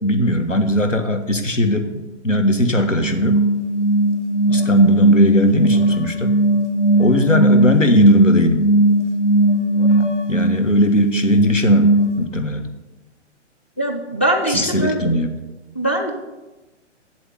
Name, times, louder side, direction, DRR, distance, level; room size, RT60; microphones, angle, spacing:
voice 1, 0.0-1.9 2.2-3.4 4.5-6.4 7.0-8.7 10.3-11.9 12.2-12.7 14.5-15.4, equal, 90° left, 7 dB, 1.5 m, -18 dB
sound 1, 3.0-12.3, right 1 dB, 70° left, 1.3 m, -17 dB
voice 2, 13.8-15.0 15.8-16.1, right 1 dB, 10° left, 2 dB, 0.4 m, -21 dB
8.0 x 7.8 x 7.9 m, 1.1 s
figure-of-eight pair, 125°, 36 cm